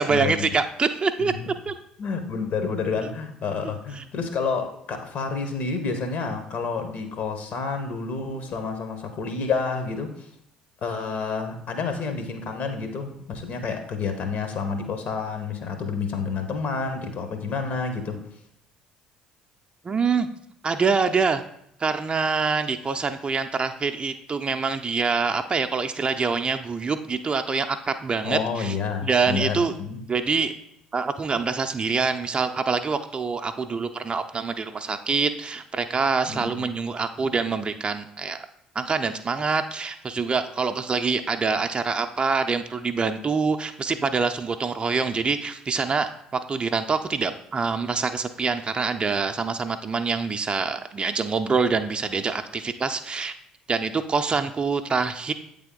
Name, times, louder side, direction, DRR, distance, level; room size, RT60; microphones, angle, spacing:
voice 1, 0.0-1.3 1.7-1.8 19.8-20.3 20.6-21.4 21.8-28.7 29.0-29.7 30.1-30.5 30.9-38.5 38.8-53.3 53.7-55.3, right 4 dB, 30° right, 8 dB, 0.5 m, -25 dB
voice 2, 2.0-10.3 10.8-18.2 28.2-30.0 36.3-36.7, left 5 dB, 55° left, 7 dB, 0.9 m, -29 dB
8.1 x 3.5 x 3.7 m, 0.74 s
figure-of-eight pair, 50°, 3 cm